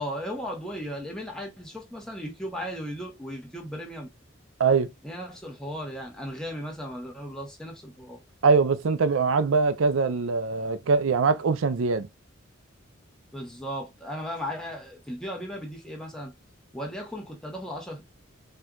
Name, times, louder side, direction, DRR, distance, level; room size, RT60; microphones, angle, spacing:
voice 1, 0.0-4.1 5.0-8.2 13.3-16.3 16.7-18.0, equal, 5° left, 0.9 m, -36 dB
voice 2, 8.4-12.1, right 4 dB, 85° right, 0.5 m, -22 dB
4.3 x 2.4 x 2.3 m
head